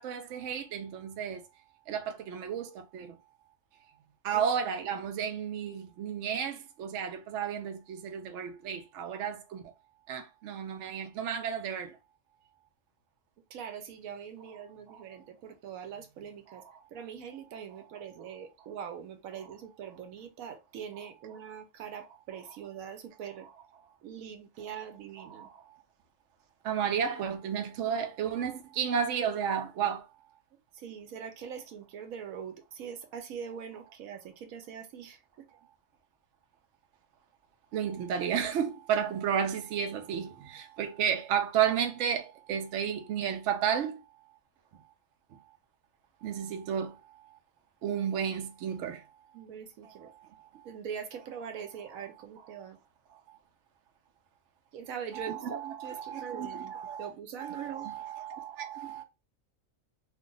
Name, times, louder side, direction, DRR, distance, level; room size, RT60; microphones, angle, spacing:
voice 1, 0.0-1.4 1.9-3.1 4.2-9.6 10.1-11.9 14.9-15.0 16.5-16.6 25.3-25.5 26.6-30.0 37.7-44.0 46.2-46.9 47.8-49.0 55.1-57.1 57.4-59.0, right 8 dB, 70° right, 0.9 m, -32 dB
voice 2, 13.5-16.6 16.9-23.5 24.0-25.5 30.7-35.2 49.3-50.1 50.6-52.8 54.7-57.9, right 7 dB, 85° right, 1.1 m, -42 dB
2.5 x 2.4 x 3.8 m
omnidirectional pair, 1.4 m